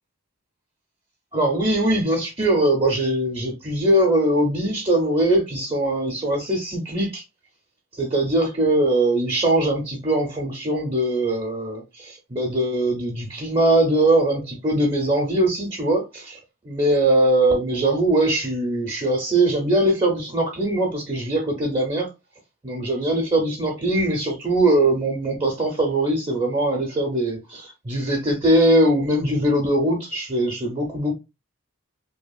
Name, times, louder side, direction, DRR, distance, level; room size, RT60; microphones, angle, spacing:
voice 1, 1.3-7.2 8.0-16.4 16.6-22.1 22.6-31.1, right 1 dB, 25° right, 0.5 m, -21 dB
2.7 x 2.4 x 2.3 m
head